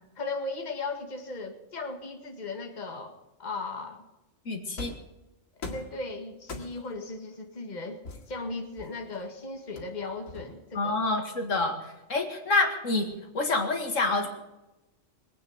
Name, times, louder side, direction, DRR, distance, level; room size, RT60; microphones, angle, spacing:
voice 1, 0.2-4.1 5.6-8.0 8.3-11.0, left 3 dB, 35° left, 4 dB, 2.0 m, -37 dB
voice 2, 4.5-4.9 10.7-13.1 13.3-14.3, left 3 dB, 70° left, 4 dB, 2.3 m, -27 dB
sound 1, 4.8-5.1 5.6-6.0 6.5-7.0 8.0-9.2 9.8-10.8, left 3 dB, 85° left, 2.5 m, -41 dB
21.5 x 9.1 x 6.7 m, 0.99 s
omnidirectional pair, 1.4 m